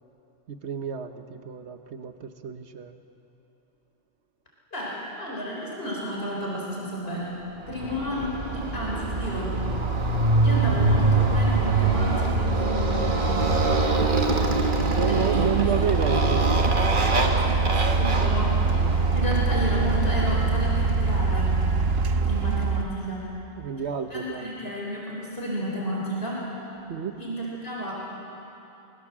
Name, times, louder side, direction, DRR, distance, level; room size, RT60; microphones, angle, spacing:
voice 1, 0.5-3.0 10.7-10.9 13.9-14.3 14.9-16.5 23.6-24.5 26.9-27.1, right 7 dB, 90° right, 8 dB, 1.3 m, -30 dB
voice 2, 4.7-7.4 7.7-9.6 10.4-13.5 15.1-15.7 16.3-18.8 19.1-21.5 22.3-23.3 24.1-26.5 27.2-28.0, equal, 65° left, -4 dB, 4.5 m, -32 dB
sound 1, 7.1-7.2 7.7-22.8, right 4 dB, 70° right, 1.2 m, -25 dB
Motorcycle, 7.7-20.4, right 2 dB, 50° right, 1.6 m, -25 dB
24.5 x 21.5 x 7.4 m, 2.9 s
omnidirectional pair, 1.1 m